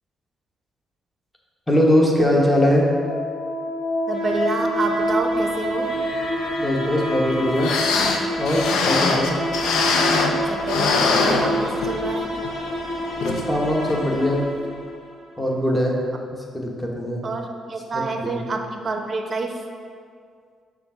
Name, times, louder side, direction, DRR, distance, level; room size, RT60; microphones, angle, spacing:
voice 1, 1.7-2.9 6.6-7.7 8.4-9.4 13.2-14.5 15.4-15.9 16.3-17.2 17.9-18.4, left 1 dB, 5° left, -2 dB, 1.0 m, -21 dB
sound 1, 2.2-15.2, equal, 60° left, 1.1 m, -27 dB
voice 2, 4.1-5.9 9.1-9.2 10.5-12.3 17.2-19.5, right 3 dB, 40° right, 4 dB, 0.6 m, -28 dB
sound 2, 5.7-10.3 10.7-10.8, equal, 35° left, 1.1 m, -40 dB
sound 3, 7.3-7.4 7.6-10.4 10.7-12.0 12.4-12.5 13.2-13.4 13.9-14.0, left 4 dB, 80° left, 0.5 m, -22 dB
6.7 x 2.5 x 5.6 m, 2.1 s
cardioid pair, 90°, 0 cm